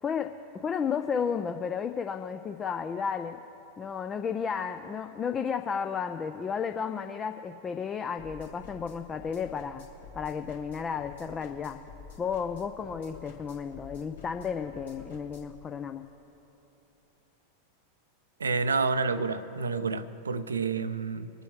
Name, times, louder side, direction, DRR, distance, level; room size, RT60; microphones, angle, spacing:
voice 1, 0.0-3.4 3.8-9.8 10.1-11.8 12.2-16.0, left 6 dB, 20° left, 8 dB, 0.4 m, -33 dB
sound 1, 8.2-15.6, left 4 dB, 65° left, 2.1 m, -49 dB
voice 2, 18.4-21.3, right 4 dB, 75° right, 13 dB, 0.5 m, -29 dB
25.5 x 9.0 x 3.3 m, 3.0 s
figure-of-eight pair, 90°, 0 cm